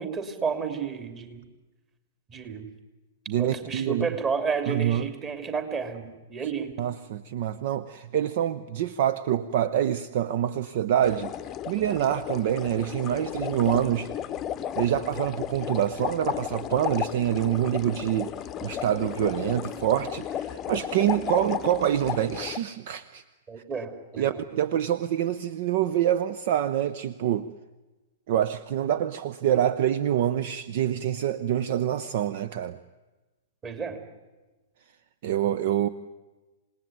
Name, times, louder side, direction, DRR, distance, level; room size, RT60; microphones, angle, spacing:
voice 1, 0.0-1.4 2.3-2.7 3.4-6.7 23.5-24.4 33.6-34.0, right 5 dB, 25° right, 7 dB, 3.0 m, -31 dB
voice 2, 3.3-4.1 4.7-5.1 6.8-11.3 11.7-14.1 14.8-18.3 18.6-23.2 24.2-27.5 28.3-32.8 35.2-35.9, right 11 dB, 50° right, 15 dB, 0.7 m, -26 dB
sound 1, 11.0-22.6, left 10 dB, 25° left, 0.8 m, -34 dB
27.0 x 19.0 x 9.3 m, 1.2 s
figure-of-eight pair, 105°, 0 cm